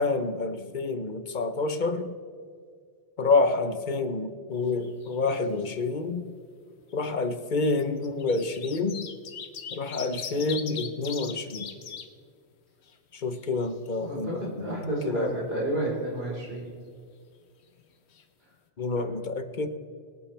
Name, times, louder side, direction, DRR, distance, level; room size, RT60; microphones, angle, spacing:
voice 1, 0.0-2.1 3.2-6.3 6.9-9.1 9.7-11.7 13.1-15.4 18.8-19.7, left 3 dB, 45° left, 9 dB, 0.9 m, -28 dB
sound 1, 4.6-5.3 5.6-5.7 6.8-6.9 7.8-12.1 12.5-12.6 12.9-13.9 17.8-17.9 18.1-18.2, left 7 dB, 70° left, 1.1 m, -40 dB
voice 2, 14.0-16.7 19.0-19.1, right 1 dB, 60° right, -5 dB, 4.5 m, -31 dB
24.0 x 8.9 x 3.3 m, 2.1 s
omnidirectional pair, 1.2 m